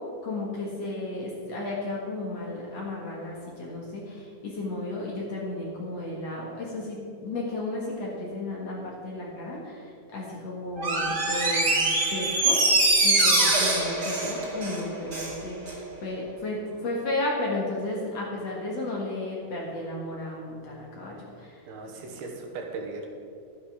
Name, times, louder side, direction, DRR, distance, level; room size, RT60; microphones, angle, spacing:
voice 1, 0.2-22.1, left 2 dB, 50° left, -3 dB, 2.4 m, -34 dB
Door, 10.8-15.4 15.7-15.8, right 2 dB, 35° right, 2.1 m, -23 dB
voice 2, 21.7-23.1, right 3 dB, 75° right, 2 dB, 3.1 m, -37 dB
13.0 x 10.0 x 4.9 m, 2.5 s
omnidirectional pair, 4.5 m